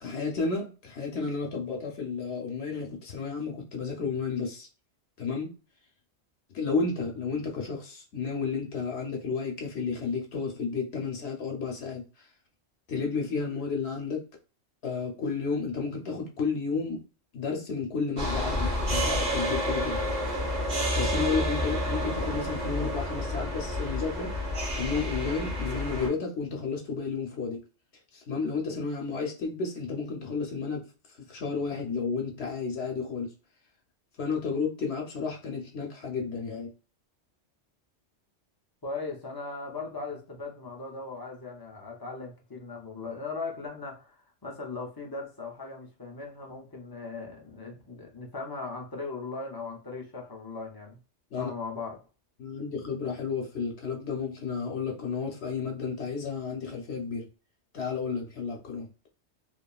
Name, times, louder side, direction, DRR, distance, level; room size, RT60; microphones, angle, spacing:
voice 1, 0.0-4.7 5.2-5.5 6.5-12.3 12.9-14.2 14.8-17.0 17.3-20.0 20.9-24.3 24.8-27.6 28.1-30.9 31.3-33.3 34.2-36.7 51.3-51.5 52.4-57.3 57.7-58.9, left 5 dB, 70° left, 0.9 m, -32 dB
sound 1, 18.2-26.1, equal, 40° right, 0.9 m, -29 dB
voice 2, 38.8-51.0 51.4-52.0, left 3 dB, 35° left, 0.4 m, -38 dB
2.9 x 2.3 x 2.3 m
omnidirectional pair, 1.2 m